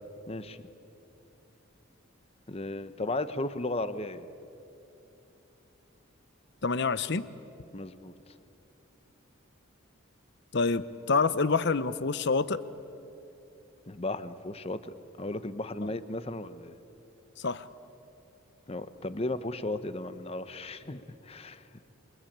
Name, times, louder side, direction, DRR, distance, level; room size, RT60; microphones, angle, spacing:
voice 1, 0.3-0.6 2.5-4.3 7.7-8.1 13.9-16.8 18.7-21.6, left 2 dB, 30° left, 12 dB, 1.0 m, -35 dB
voice 2, 6.6-7.3 10.5-12.6 15.8-15.9 17.4-17.7, left 4 dB, 55° left, 15 dB, 0.8 m, -27 dB
27.0 x 23.5 x 8.8 m, 2.9 s
head